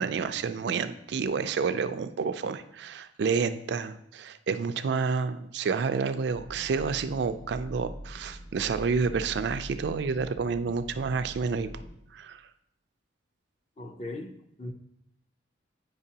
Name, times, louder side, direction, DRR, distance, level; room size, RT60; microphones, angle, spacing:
voice 1, 0.0-11.7 12.1-12.4, right 5 dB, 60° right, 0.3 m, -29 dB
sound 1, 6.3-11.9, equal, 90° left, 2.6 m, -43 dB
voice 2, 13.8-14.7, left 2 dB, 35° left, 0.5 m, -39 dB
8.8 x 5.2 x 2.8 m
head